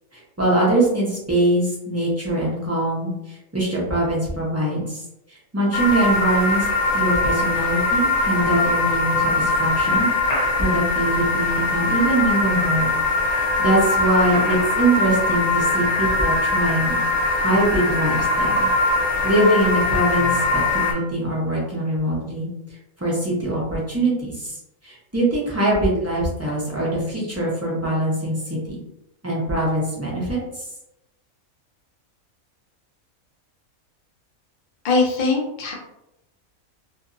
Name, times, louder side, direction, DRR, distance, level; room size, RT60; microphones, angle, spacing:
voice 1, 0.4-5.0 5.5-6.7 6.9-12.9 13.6-17.0 17.4-18.7 19.2-20.4 20.7-22.5 23.0-24.6 24.8-28.8 29.2-30.4, right 1 dB, 15° right, -6 dB, 0.6 m, -22 dB
sound 1, 5.7-20.9, left 2 dB, 85° left, 0.3 m, -21 dB
voice 2, 34.8-35.7, left 3 dB, 45° left, -1 dB, 0.6 m, -21 dB
2.7 x 2.7 x 2.5 m, 0.85 s
omnidirectional pair, 1.5 m